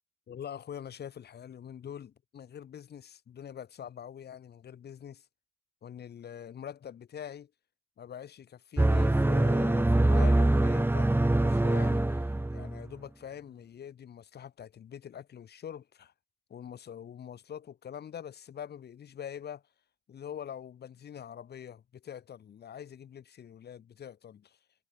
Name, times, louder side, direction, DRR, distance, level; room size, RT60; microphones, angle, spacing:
voice 1, 0.3-5.3 5.8-7.5 8.0-16.1 16.5-19.6 20.1-24.6, left 9 dB, 80° left, 6.0 m, -44 dB
sound 1, 8.8-12.8, right 2 dB, 15° right, 1.5 m, -24 dB
cardioid pair, 80°, 16 cm